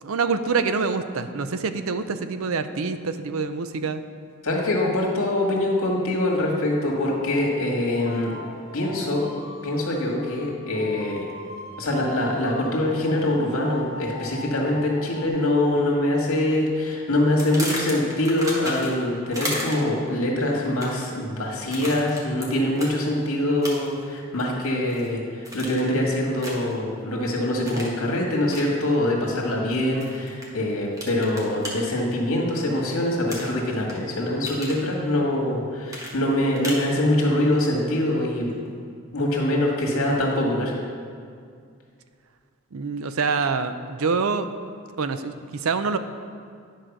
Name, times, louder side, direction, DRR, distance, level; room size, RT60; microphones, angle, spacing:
voice 1, 0.0-4.0 42.7-44.5 45.0-46.0, right 4 dB, 75° right, 10 dB, 0.5 m, -26 dB
voice 2, 4.4-8.3 8.7-9.3 9.6-11.3 11.8-38.7 39.1-40.8, left 1 dB, 75° left, -1 dB, 1.8 m, -24 dB
sound 1, 6.8-15.3, left 2 dB, 60° left, 1.0 m, -41 dB
sound 2, 17.4-19.0 19.3-20.0 20.6-21.1 21.7-22.5 22.8-22.9 23.6-24.0 24.4-25.1 25.4-25.9 26.4-26.7 27.7-28.0 28.5-28.7 30.0-30.5 31.0-31.7 33.3-33.9 34.3-34.8 35.9-36.9, equal, 15° right, 1.3 m, -33 dB
10.0 x 4.9 x 6.0 m, 2.2 s
head